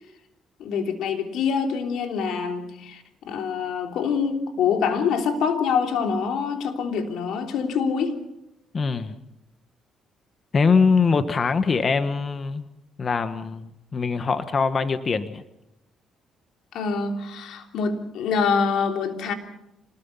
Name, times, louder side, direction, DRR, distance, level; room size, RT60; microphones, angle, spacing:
voice 1, 0.6-8.2 16.7-19.3, left 6 dB, 80° left, 4 dB, 3.2 m, -25 dB
voice 2, 8.7-9.2 10.5-12.6 13.0-15.4, left 5 dB, 35° left, 10 dB, 1.3 m, -22 dB
26.0 x 20.0 x 5.6 m, 0.85 s
cardioid pair, 105°, 0 cm